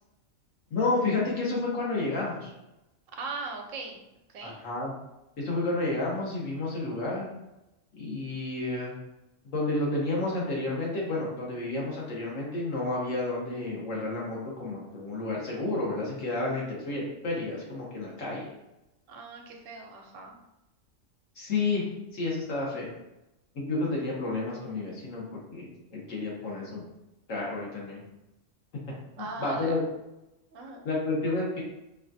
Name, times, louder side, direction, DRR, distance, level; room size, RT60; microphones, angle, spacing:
voice 1, 0.7-2.5 4.4-4.9 5.4-7.3 8.0-8.9 9.4-18.5 21.4-21.8 22.1-22.9 23.5-25.2 25.5-26.8 27.3-28.0 29.2-29.8 30.8-31.6, left 2 dB, 75° left, -4 dB, 1.5 m, -30 dB
voice 2, 3.2-4.0 4.3-4.6 19.1-20.4 29.2-29.8 30.5-30.8, right 3 dB, 80° right, 2 dB, 1.0 m, -39 dB
5.0 x 2.4 x 2.6 m, 0.93 s
omnidirectional pair, 1.3 m